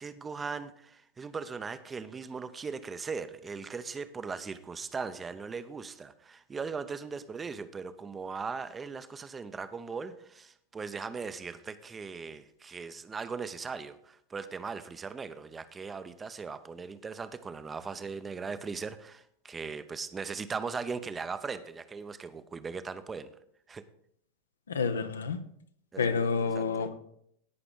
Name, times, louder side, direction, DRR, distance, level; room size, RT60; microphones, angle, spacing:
voice 1, 0.0-23.3 23.7-23.8 25.9-26.3 26.5-26.9, right 5 dB, 15° right, 12 dB, 0.6 m, -39 dB
voice 2, 24.7-25.4 26.0-27.0, left 5 dB, 70° left, 10 dB, 0.8 m, -29 dB
17.5 x 5.9 x 3.8 m, 0.68 s
figure-of-eight pair, 90°, 0 cm